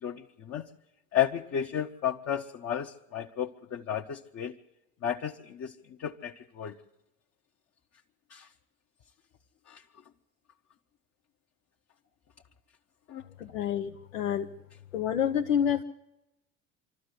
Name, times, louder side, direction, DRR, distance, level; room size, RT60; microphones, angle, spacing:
voice 1, 0.0-0.7 1.1-4.5 5.0-5.7 6.0-6.8 8.3-8.5 9.7-9.8 13.1-13.2, left 9 dB, 40° left, 2 dB, 0.9 m, -33 dB
voice 2, 13.4-14.5 14.9-15.8, left 9 dB, 90° left, 3 dB, 0.7 m, -28 dB
25.0 x 13.0 x 8.2 m, 0.95 s
hypercardioid pair, 70°, 38 cm